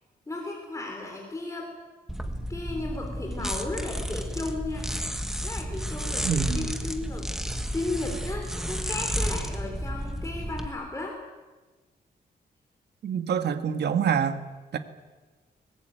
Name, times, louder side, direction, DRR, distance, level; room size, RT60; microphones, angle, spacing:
voice 1, 0.3-1.7 2.3-4.9 5.4-7.3 7.7-11.2, left 2 dB, 15° left, 2 dB, 3.3 m, -35 dB
sound 1, 2.1-10.7, equal, 5° right, 1.7 m, -32 dB
voice 2, 6.2-6.7 13.0-14.4 14.7-14.8, right 7 dB, 75° right, 9 dB, 1.8 m, -26 dB
23.0 x 20.0 x 9.2 m, 1.3 s
wide cardioid pair, 160°, 18 cm